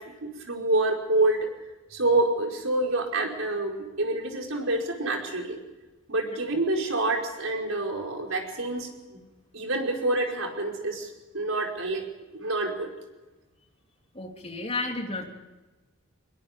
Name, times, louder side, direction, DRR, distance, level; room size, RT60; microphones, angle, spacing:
voice 1, 0.0-1.5 1.9-5.6 6.1-9.2 9.5-11.1 11.3-12.0 12.3-12.9, right 2 dB, 85° right, 2 dB, 4.9 m, -27 dB
voice 2, 14.1-15.2, left 2 dB, 30° left, 1 dB, 3.1 m, -32 dB
25.5 x 21.5 x 5.3 m, 1.1 s
head